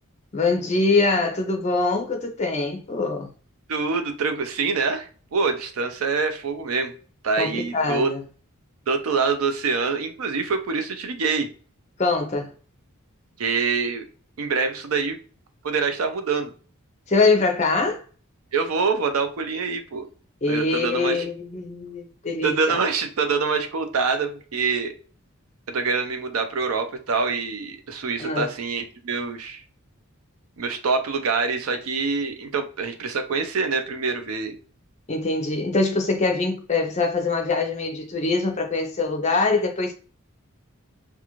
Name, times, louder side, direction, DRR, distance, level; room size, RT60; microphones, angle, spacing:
voice 1, 0.3-3.3 7.4-8.2 12.0-12.5 17.1-18.0 20.4-22.8 28.2-28.5 35.1-39.9, left 3 dB, 30° left, 0.5 m, -23 dB
voice 2, 3.7-6.9 7.2-8.1 8.9-11.5 13.4-14.0 14.4-15.2 15.6-16.5 18.5-20.1 20.5-21.3 22.4-24.9 25.7-29.6 30.6-34.6, right 4 dB, 80° right, 0.5 m, -25 dB
2.4 x 2.3 x 2.9 m
head